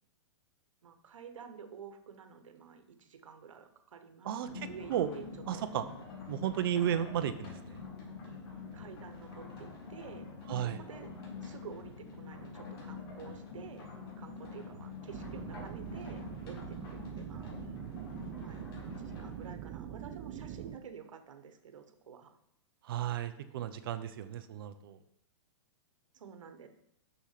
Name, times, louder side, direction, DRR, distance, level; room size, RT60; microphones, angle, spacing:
voice 1, 0.8-5.2 5.5-5.7 8.7-11.1 11.4-13.9 14.2-17.5 18.4-18.6 19.0-22.4 26.1-26.7, right 7 dB, 85° right, 8 dB, 1.3 m, -50 dB
voice 2, 4.2-5.1 5.5-5.8 6.3-7.8 10.5-10.8 22.8-25.0, right 10 dB, 45° right, 10 dB, 0.8 m, -34 dB
sound 1, 4.4-19.5, left 4 dB, 50° left, 3.0 m, -46 dB
sound 2, 15.1-20.8, right 11 dB, 20° right, 0.4 m, -43 dB
7.0 x 6.4 x 5.9 m, 0.76 s
hypercardioid pair, 165°, 16 cm